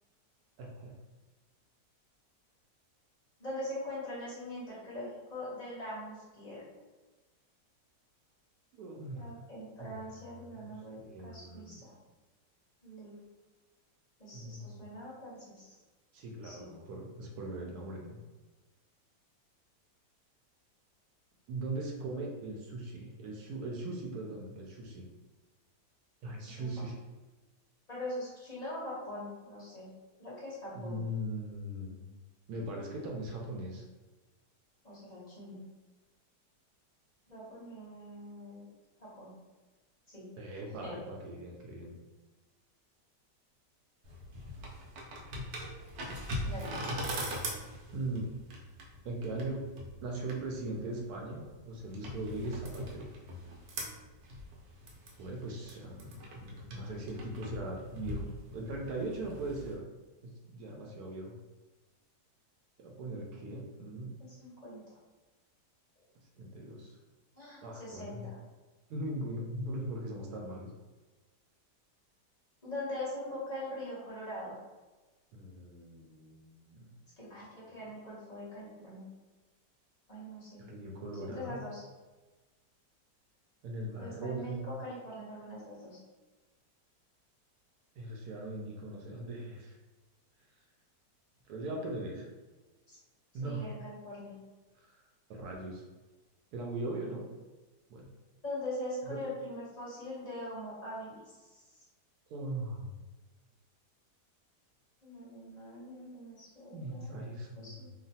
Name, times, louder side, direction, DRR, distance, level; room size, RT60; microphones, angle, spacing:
voice 1, 0.6-0.9 8.7-9.3 9.8-9.9 10.5-11.8 14.3-14.8 16.1-18.2 21.5-25.1 26.2-26.9 30.7-32.0 32.5-33.8 40.4-41.9 47.9-48.3 49.0-49.7 50.0-53.1 55.2-59.8 60.2-61.3 62.8-64.1 66.4-67.0 67.6-68.3 68.9-70.7 75.3-76.9 80.6-81.6 83.6-84.7 88.0-89.8 91.5-92.3 93.3-93.7 94.9-95.0 95.3-95.8 96.5-97.3 97.9-98.1 99.1-99.2 102.3-103.0 106.7-107.8, right 2 dB, 75° right, 0 dB, 1.0 m, -40 dB
voice 2, 3.4-6.6 9.1-11.9 12.8-13.2 14.2-15.8 16.4-16.7 26.5-26.7 27.9-29.9 30.2-31.1 34.8-35.6 37.3-38.7 39.0-39.3 40.1-40.3 40.8-41.0 46.4-46.7 64.2-64.8 67.3-68.4 72.6-74.6 77.2-79.0 80.1-80.6 81.1-81.9 83.9-86.0 92.9-93.0 93.4-94.4 98.4-101.6 105.0-107.3 107.5-107.9, left 1 dB, 35° left, -7 dB, 0.7 m, -42 dB
sound 1, 44.0-59.7, equal, 90° right, 1.3 m, -42 dB
3.0 x 2.2 x 2.7 m, 1.2 s
omnidirectional pair, 1.8 m